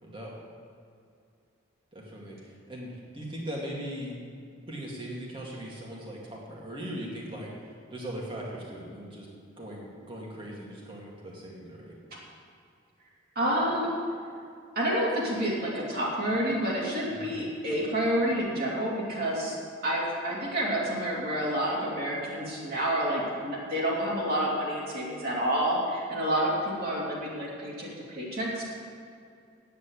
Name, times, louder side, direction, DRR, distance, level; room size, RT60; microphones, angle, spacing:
voice 1, 0.0-0.3 1.9-2.9 3.1-4.2 4.7-7.5 7.9-9.3 9.6-11.9 17.1-17.4, equal, 25° right, -3 dB, 2.2 m, -39 dB
voice 2, 13.3-13.9 14.7-19.6 19.8-28.6, right 1 dB, 45° right, -5 dB, 2.8 m, -29 dB
9.5 x 8.3 x 8.3 m, 2.4 s
head